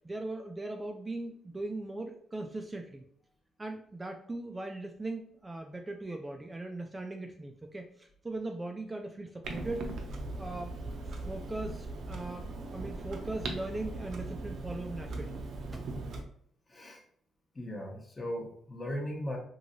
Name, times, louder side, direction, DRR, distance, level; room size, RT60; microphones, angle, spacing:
voice 1, 0.0-3.0 3.6-9.9 10.4-15.4, right 2 dB, 20° right, 4 dB, 0.3 m, -39 dB
Clock, 9.4-16.2, right 2 dB, 65° right, 0.5 m, -39 dB
voice 2, 16.7-17.0 17.5-19.4, equal, 25° left, 1 dB, 0.8 m, -37 dB
3.0 x 2.7 x 2.6 m, 0.63 s
cardioid pair, 90°, 0 cm